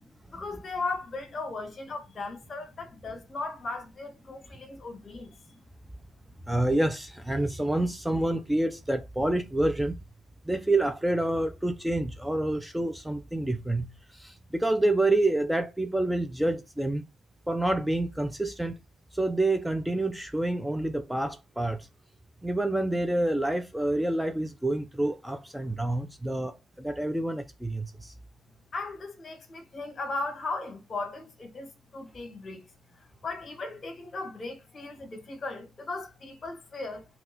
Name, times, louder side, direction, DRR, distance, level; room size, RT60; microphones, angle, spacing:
voice 1, 0.3-5.3 28.7-32.7 33.2-37.1, left 3 dB, 40° left, 2.2 m, -37 dB
voice 2, 6.5-9.9 10.5-13.9 14.2-17.0 17.5-18.7 19.1-21.8 22.4-28.1, right 1 dB, 5° right, 0.7 m, -28 dB
5.6 x 3.0 x 5.5 m
cardioid pair, 90°, 0 cm